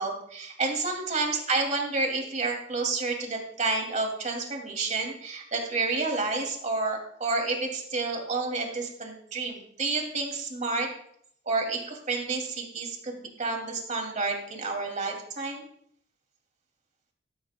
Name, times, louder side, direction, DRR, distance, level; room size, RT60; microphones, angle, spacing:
voice 1, 0.0-10.9 11.5-15.6, right 3 dB, 40° right, 2 dB, 2.4 m, -30 dB
14.0 x 14.0 x 2.2 m, 0.66 s
head